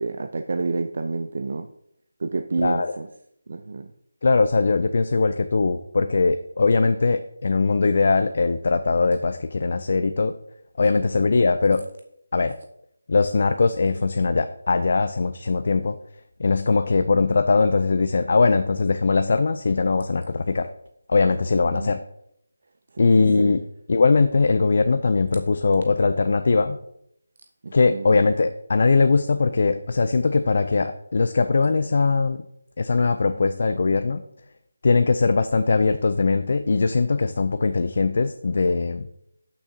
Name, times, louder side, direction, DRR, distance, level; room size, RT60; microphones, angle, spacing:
voice 1, 0.0-1.7 2.2-3.1 3.5-3.9 21.7-21.9 23.0-23.6 27.6-28.1, right 3 dB, 50° right, 8 dB, 0.5 m, -29 dB
voice 2, 2.6-3.0 4.2-10.3 10.8-11.8 12.3-12.6 13.1-16.0 16.4-20.7 21.1-22.0 23.0-23.6 23.9-26.8 27.7-32.4 32.8-34.2 34.8-39.1, left 4 dB, 50° left, 9 dB, 0.4 m, -20 dB
12.0 x 6.1 x 2.8 m, 0.77 s
figure-of-eight pair, 170°, 0 cm